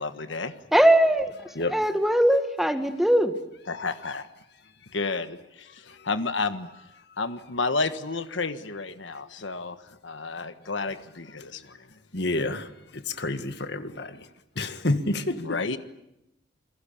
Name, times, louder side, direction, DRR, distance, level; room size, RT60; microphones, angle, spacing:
voice 1, 0.0-0.5 3.7-4.3 4.9-6.7 7.2-9.8 10.0-11.8 15.4-15.8, left 3 dB, 80° left, 11 dB, 1.4 m, -31 dB
voice 2, 0.7-1.3 1.7-3.3, right 1 dB, ahead, 8 dB, 1.6 m, -20 dB
voice 3, 12.1-12.7 12.9-14.2 14.6-15.6, left 2 dB, 60° left, 9 dB, 2.0 m, -28 dB
28.5 x 22.0 x 8.7 m, 0.86 s
head